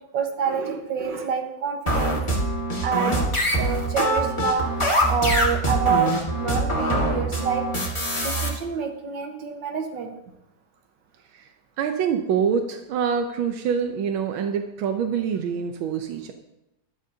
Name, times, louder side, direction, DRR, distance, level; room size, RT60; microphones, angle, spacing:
voice 1, 0.1-2.2 2.8-3.2 3.6-4.7 5.1-6.1 6.4-7.6 8.2-10.1, right 6 dB, 70° right, 4 dB, 2.0 m, -27 dB
sound 1, 1.9-8.5, equal, 15° left, 1.8 m, -23 dB
voice 2, 11.8-16.3, right 7 dB, 85° right, 5 dB, 1.6 m, -25 dB
14.0 x 12.0 x 2.8 m, 0.88 s
omnidirectional pair, 2.1 m